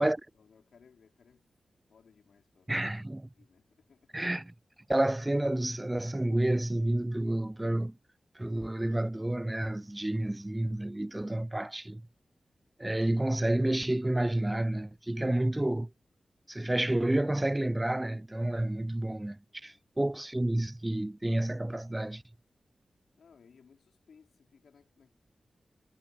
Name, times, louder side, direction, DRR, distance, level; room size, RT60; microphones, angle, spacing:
voice 1, 0.0-1.5 1.9-3.1 3.3-4.3 19.6-19.9 23.2-25.1, left 6 dB, 85° left, 4.5 m, -62 dB
voice 2, 2.7-3.3 4.1-4.5 4.9-7.9 8.4-12.0 12.8-15.9 16.5-22.2, right 1 dB, 20° right, 0.5 m, -30 dB
cardioid pair, 45°, 0 cm